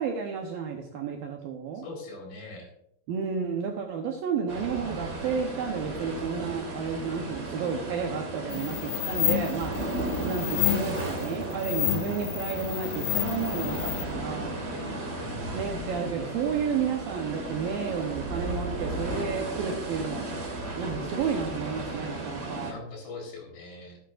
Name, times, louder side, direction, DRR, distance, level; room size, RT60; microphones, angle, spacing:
voice 1, 0.0-1.8 3.1-9.8 10.2-14.6 15.5-20.3 20.8-22.7, right 6 dB, 75° right, 2 dB, 2.2 m, -31 dB
voice 2, 1.8-2.7 10.8-11.3 15.2-16.0 22.6-24.0, left 2 dB, 70° left, 0 dB, 5.7 m, -42 dB
sound 1, 4.5-22.7, right 2 dB, 35° right, 1.6 m, -35 dB
sound 2, 8.5-14.0, left 16 dB, 90° left, 2.1 m, -30 dB
12.5 x 11.5 x 2.5 m, 0.75 s
omnidirectional pair, 5.1 m